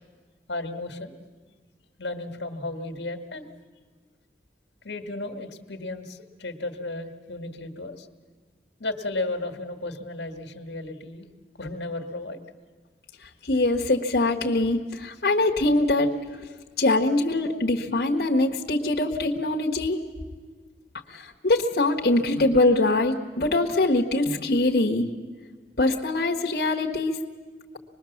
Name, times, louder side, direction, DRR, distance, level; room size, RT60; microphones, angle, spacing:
voice 1, 0.5-1.2 2.0-3.5 4.8-8.1 8.8-11.3 11.6-12.4, left 2 dB, 85° left, 6 dB, 1.8 m, -34 dB
voice 2, 13.4-16.1 16.8-20.0 21.1-25.1 25.8-27.2, left 2 dB, 60° left, 0 dB, 1.4 m, -23 dB
25.0 x 21.0 x 7.2 m, 1.5 s
head